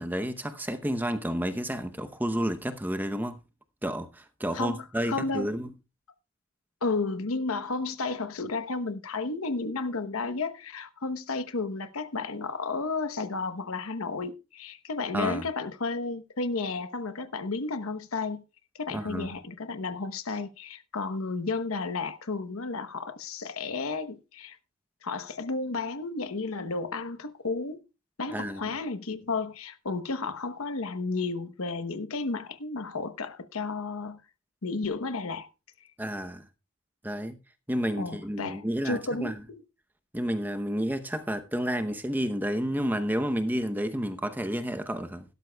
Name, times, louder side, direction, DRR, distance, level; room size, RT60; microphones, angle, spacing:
voice 1, 0.0-3.4 3.8-5.7 15.1-15.5 18.9-19.3 28.3-28.7 36.0-36.4 37.0-37.4 37.7-39.4 40.1-45.2, equal, 10° right, 0.8 m, -30 dB
voice 2, 4.5-5.5 6.8-18.4 18.7-24.6 25.0-27.8 28.2-34.2 34.6-35.5 37.9-39.6, left 3 dB, 85° left, 1.0 m, -32 dB
16.5 x 12.5 x 2.3 m
head